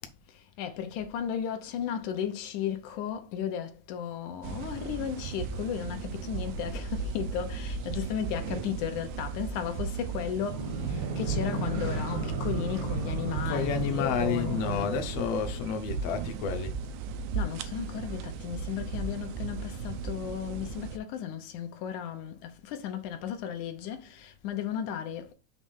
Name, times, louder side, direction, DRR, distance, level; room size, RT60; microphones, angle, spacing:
voice 1, 0.6-15.0 17.3-25.3, left 9 dB, 85° left, 2.4 m, -35 dB
sound 1, 4.4-21.0, right 5 dB, 85° right, 2.1 m, -36 dB
sound 2, 10.4-15.6, right 4 dB, 55° right, 1.2 m, -34 dB
voice 2, 13.5-16.7, left 7 dB, 70° left, 1.7 m, -30 dB
6.9 x 3.1 x 5.5 m
omnidirectional pair, 3.4 m